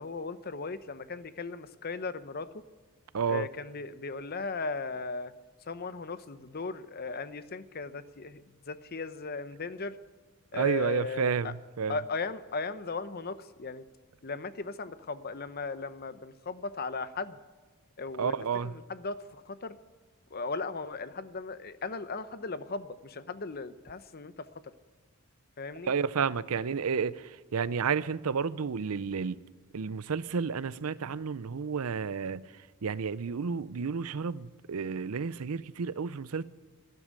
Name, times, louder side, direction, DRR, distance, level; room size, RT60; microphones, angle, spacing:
voice 1, 0.0-2.6 3.3-5.3 5.7-10.0 10.5-11.5 11.9-13.8 14.2-17.4 18.0-18.3 18.6-19.8 20.3-24.5 25.6-25.9, left 4 dB, 45° left, 0.7 m, -37 dB
voice 2, 3.1-3.5 10.5-12.0 18.2-18.7 25.9-29.4 29.7-32.4 32.8-36.4, right 6 dB, 75° right, 0.5 m, -31 dB
12.5 x 12.0 x 9.5 m
head